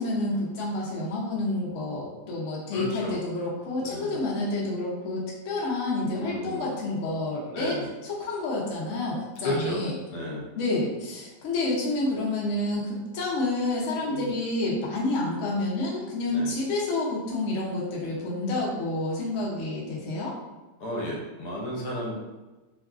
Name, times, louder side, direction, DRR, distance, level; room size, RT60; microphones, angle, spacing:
voice 1, 0.0-7.8 8.0-9.9 10.6-20.3, left 2 dB, 60° left, -4 dB, 0.9 m, -29 dB
voice 2, 2.7-3.2 3.8-4.2 6.1-6.8 7.4-7.9 9.4-9.8 10.1-10.4 14.0-14.3 16.2-16.5 20.8-22.1, left 1 dB, 80° left, -3 dB, 1.3 m, -33 dB
3.0 x 2.5 x 2.3 m, 1.1 s
omnidirectional pair, 1.8 m